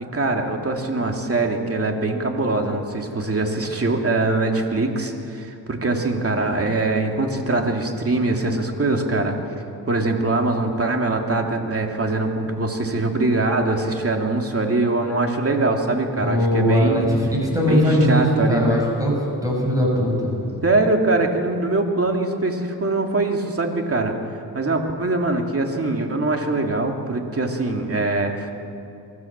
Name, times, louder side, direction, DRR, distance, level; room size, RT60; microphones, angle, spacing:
voice 1, 0.1-17.1 17.7-18.9 20.6-24.2 24.5-28.5, right 2 dB, 35° right, 3 dB, 2.8 m, -23 dB
voice 2, 16.2-19.2 19.4-20.5, equal, 10° right, -1 dB, 6.6 m, -20 dB
24.5 x 14.5 x 7.5 m, 2.7 s
cardioid pair, 75°, 40 cm